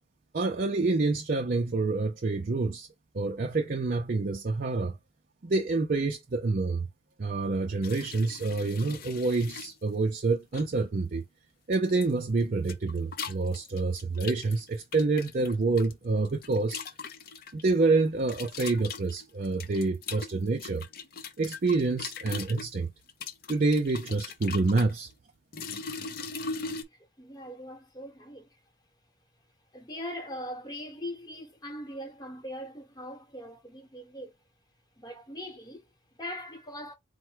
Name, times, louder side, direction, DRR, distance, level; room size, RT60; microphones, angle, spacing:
voice 1, 0.3-2.9 3.1-5.0 5.4-6.9 7.2-11.2 11.7-16.8 17.5-20.8 21.4-22.9 23.5-25.1, right 3 dB, 45° right, 0.5 m, -27 dB
sound 1, 7.8-9.7 10.5-10.8 11.7-12.1 12.4-15.9 16.2-17.7 18.3-22.7 23.1-24.9 25.5-26.8, left 5 dB, 50° left, 0.6 m, -40 dB
voice 2, 26.9-28.5 29.7-34.3 35.0-36.9, left 1 dB, 20° left, 1.0 m, -41 dB
4.4 x 2.1 x 4.5 m
head